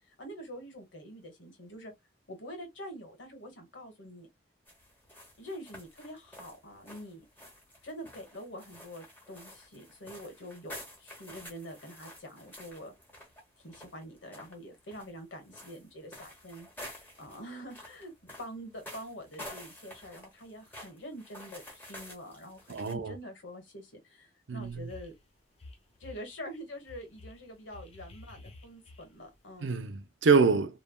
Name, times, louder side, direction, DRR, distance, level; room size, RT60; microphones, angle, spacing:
voice 1, 0.0-1.9 2.3-4.3 5.4-7.3 7.8-12.9 13.6-25.1 26.0-29.8, equal, 85° left, 1.2 m, -46 dB
sound 1, 4.7-22.9, left 1 dB, 10° left, 1.0 m, -50 dB
voice 2, 22.7-23.2 24.5-24.9 29.6-30.8, right 5 dB, 85° right, 0.5 m, -26 dB
sound 2, 24.6-25.2 25.6-26.3 26.9-29.4, left 2 dB, 35° left, 0.6 m, -50 dB
3.1 x 2.2 x 2.2 m
head